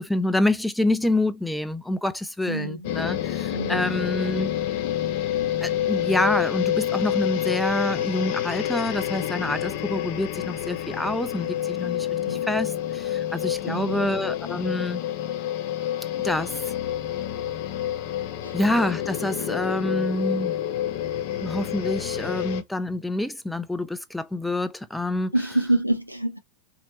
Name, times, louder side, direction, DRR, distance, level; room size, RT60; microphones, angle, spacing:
voice 1, 0.0-4.5 5.6-15.0 16.2-16.6 18.5-20.6 21.4-25.3, left 1 dB, 5° left, 0.5 m, -27 dB
voice 2, 2.5-2.9 3.5-3.9 12.2-12.4 13.7-14.1 18.4-18.6 25.3-26.4, right 1 dB, 90° right, 0.7 m, -27 dB
sound 1, 2.8-22.6, left 11 dB, 50° left, 0.6 m, -28 dB
4.1 x 2.8 x 2.9 m
figure-of-eight pair, 90°, 0 cm